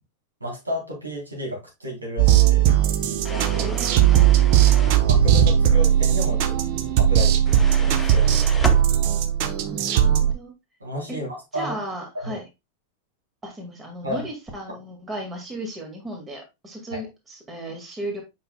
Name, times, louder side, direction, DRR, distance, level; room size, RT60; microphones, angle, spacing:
voice 1, 0.4-2.6 3.3-3.7 5.1-6.5 7.0-8.8 10.8-11.7 12.1-12.4 14.0-14.3 14.6-14.8 16.9-17.0, left 1 dB, 80° right, 3.3 m, -32 dB
sound 1, 2.2-10.3, right 10 dB, 45° right, 0.7 m, -18 dB
sound 2, 3.2-5.0 7.5-8.8, left 2 dB, 5° left, 0.8 m, -34 dB
voice 2, 3.6-4.1 4.5-4.7 9.5-10.5 11.1-11.2 11.5-12.4 13.4-18.2, right 1 dB, 20° right, 1.9 m, -35 dB
8.0 x 5.5 x 2.2 m
figure-of-eight pair, 90°, 0 cm